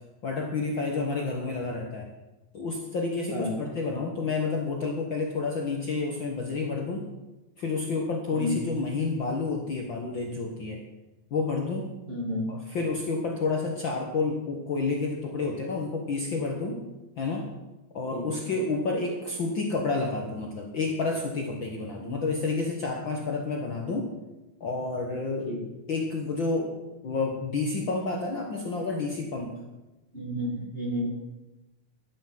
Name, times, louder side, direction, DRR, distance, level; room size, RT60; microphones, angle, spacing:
voice 1, 0.2-2.1 2.5-7.1 7.6-10.8 11.3-11.9 12.5-16.8 17.2-17.5 17.9-24.1 24.6-25.5 25.9-29.5, left 3 dB, 50° left, 0 dB, 1.7 m, -30 dB
voice 2, 12.1-12.5 18.1-18.5 22.0-22.2 25.5-25.6 30.1-31.1, equal, 20° right, -2 dB, 2.2 m, -31 dB
11.5 x 9.9 x 7.6 m, 1.1 s
omnidirectional pair, 3.6 m